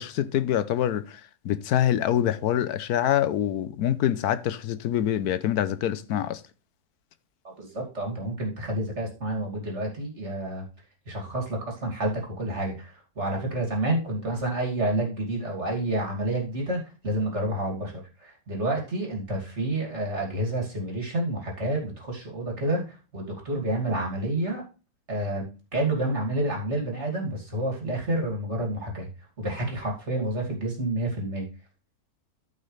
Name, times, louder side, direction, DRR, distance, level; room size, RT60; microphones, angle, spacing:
voice 1, 0.0-6.4, left 11 dB, 80° left, 1.3 m, -25 dB
voice 2, 7.4-10.6 11.1-24.6 25.1-29.1 29.4-31.5, right 1 dB, 45° right, 2.9 m, -29 dB
14.0 x 5.4 x 3.3 m
omnidirectional pair, 1.6 m